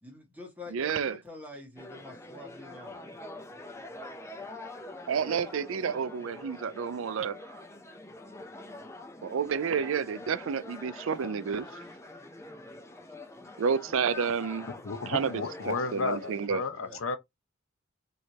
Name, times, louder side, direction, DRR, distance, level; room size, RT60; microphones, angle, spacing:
voice 1, 0.0-3.0 16.7-17.0, left 2 dB, 10° right, 1.4 m, -46 dB
voice 2, 0.7-1.2 5.1-7.4 9.2-11.7 13.6-14.7 15.1-15.3 15.7-16.6, right 6 dB, 75° right, 0.4 m, -30 dB
sound 1, 1.8-16.5, left 2 dB, 15° left, 0.6 m, -45 dB
voice 3, 14.8-17.2, left 4 dB, 85° left, 0.8 m, -33 dB
4.6 x 3.2 x 2.8 m
head